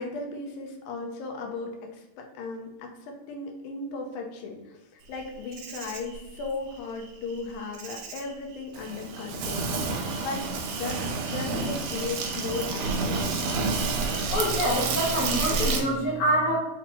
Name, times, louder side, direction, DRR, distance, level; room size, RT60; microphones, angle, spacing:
voice 1, 0.0-11.0 11.3-13.4, left 3 dB, 85° left, 2 dB, 2.2 m, -36 dB
Insect, 5.1-15.8, right 4 dB, 85° right, 2.2 m, -30 dB
voice 2, 14.3-16.6, equal, 65° left, -3 dB, 1.5 m, -25 dB
5.7 x 2.1 x 4.2 m, 1.0 s
omnidirectional pair, 3.5 m